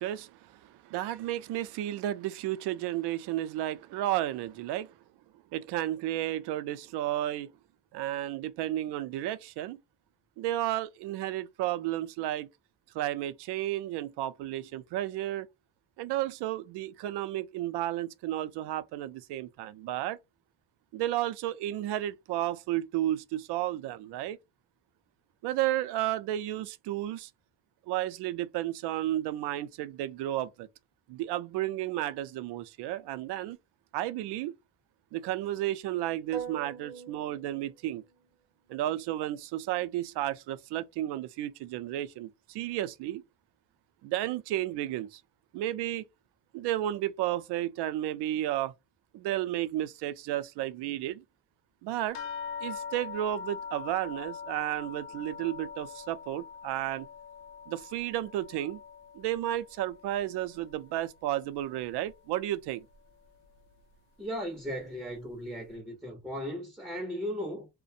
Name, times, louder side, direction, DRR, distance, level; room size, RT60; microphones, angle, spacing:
voice 1, 0.0-4.9 5.5-7.5 7.9-9.8 10.4-12.5 12.9-15.5 16.0-20.2 20.9-24.4 25.4-27.3 27.9-30.7 31.1-33.6 33.9-34.5 35.1-38.0 38.7-43.2 44.0-45.2 45.5-46.0 46.5-48.7 49.1-51.2 51.8-52.2 52.6-57.1 57.7-58.8 59.1-62.9, right 13 dB, 65° right, 0.5 m, -32 dB
sound 1, 36.3-38.3, right 8 dB, 45° right, 0.8 m, -42 dB
sound 2, 52.1-61.0 61.3-62.2 62.9-63.0 63.4-63.6, left 6 dB, 60° left, 0.5 m, -43 dB
voice 2, 64.2-67.7, equal, 5° right, 0.5 m, -36 dB
2.4 x 2.1 x 2.6 m
cardioid pair, 165°, 43 cm